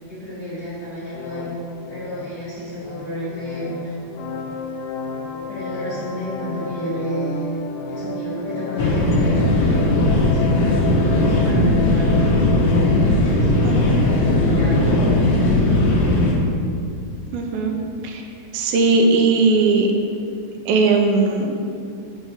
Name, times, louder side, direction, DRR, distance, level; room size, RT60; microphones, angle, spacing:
voice 1, 0.0-1.5 1.9-4.1 5.5-12.6 13.0-15.6, equal, 35° left, -11 dB, 1.7 m, -31 dB
sound 1, 1.1-15.1, left 4 dB, 80° left, 2.1 m, -32 dB
sound 2, 8.8-16.3, left 1 dB, 60° left, 1.8 m, -17 dB
voice 2, 13.6-14.0 17.3-17.7 18.0-18.2 18.5-19.9 20.7-21.5, right 3 dB, 85° right, 3 dB, 2.6 m, -18 dB
7.4 x 6.1 x 5.6 m, 2.4 s
omnidirectional pair, 4.1 m